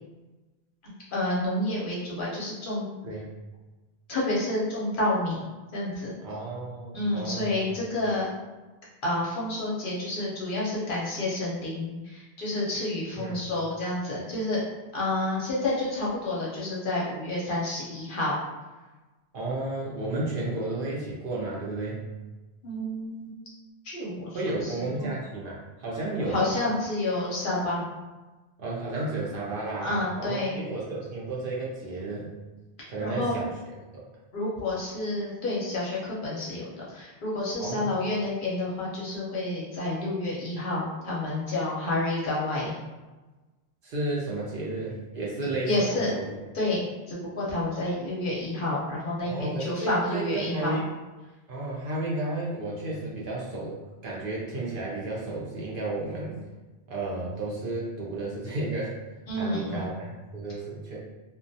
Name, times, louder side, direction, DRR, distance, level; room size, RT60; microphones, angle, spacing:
voice 1, 1.1-2.8 4.1-5.4 5.7-6.2 6.9-8.3 9.0-14.6 14.9-18.3 22.6-23.3 23.8-25.1 26.3-27.8 29.8-30.5 32.8-33.4 34.3-42.8 45.7-46.1 46.5-50.8 59.3-59.9, left 2 dB, 55° left, -5 dB, 0.7 m, -29 dB
voice 2, 6.2-7.8 13.2-13.4 19.3-22.1 24.3-26.5 28.6-32.3 32.9-33.5 37.6-38.0 43.8-46.4 49.2-50.8 51.5-53.7 54.0-56.4 56.9-58.9 59.4-61.0, right 2 dB, 60° right, -4 dB, 0.7 m, -32 dB
2.2 x 2.2 x 2.6 m, 1.2 s
omnidirectional pair, 1.1 m